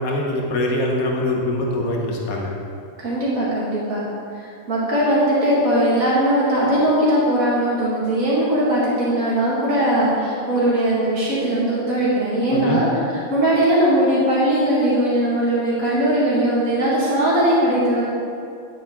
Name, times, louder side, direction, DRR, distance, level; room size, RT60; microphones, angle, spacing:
voice 1, 0.0-2.5 12.5-12.8, left 1 dB, 90° left, -1 dB, 1.5 m, -23 dB
voice 2, 3.0-4.0 4.3-18.0, right 1 dB, 80° right, -7 dB, 2.3 m, -19 dB
10.0 x 8.5 x 3.6 m, 2.4 s
omnidirectional pair, 1.4 m